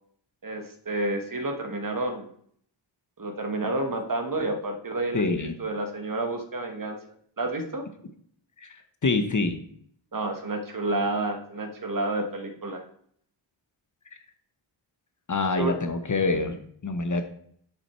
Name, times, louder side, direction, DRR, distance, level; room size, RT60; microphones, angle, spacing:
voice 1, 0.4-2.3 3.2-7.0 7.4-7.9 10.1-12.8 15.6-15.8, right 2 dB, 40° right, 5 dB, 1.4 m, -30 dB
voice 2, 5.1-5.6 8.6-9.6 15.3-17.2, left 3 dB, 40° left, 8 dB, 0.9 m, -26 dB
10.5 x 6.3 x 4.4 m, 0.63 s
wide cardioid pair, 145°, 48 cm